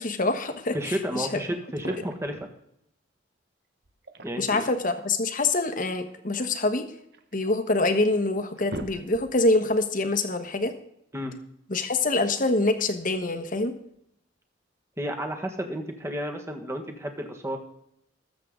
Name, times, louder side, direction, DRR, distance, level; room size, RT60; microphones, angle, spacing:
voice 1, 0.0-1.3 4.4-6.9 7.3-10.7 11.7-13.7, left 2 dB, 45° left, 9 dB, 1.3 m, -25 dB
voice 2, 0.7-2.5 4.2-4.6 11.1-11.3 15.0-17.6, equal, 15° right, 4 dB, 1.6 m, -32 dB
sound 1, 1.6-2.4 3.8-4.7 5.9-7.3 7.9-8.0 8.4-9.5, right 2 dB, 55° right, 1.2 m, -41 dB
20.5 x 7.7 x 3.8 m, 0.75 s
head